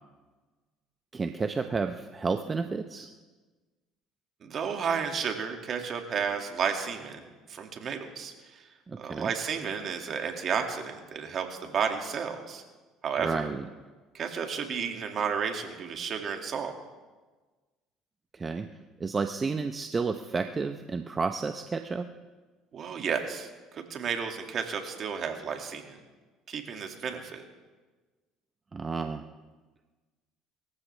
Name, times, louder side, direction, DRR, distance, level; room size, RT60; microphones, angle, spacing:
voice 1, 1.1-3.1 8.9-9.3 13.2-13.7 18.3-18.7 19.0-22.1 28.7-29.2, right 4 dB, 25° right, 7 dB, 0.7 m, -31 dB
voice 2, 4.4-7.2 7.5-8.6 9.0-12.6 13.0-13.5 14.1-16.7 22.7-26.0 26.5-27.4, right 6 dB, 50° right, 4 dB, 2.2 m, -32 dB
24.0 x 14.5 x 3.4 m, 1.3 s
supercardioid pair, 85°, 0 cm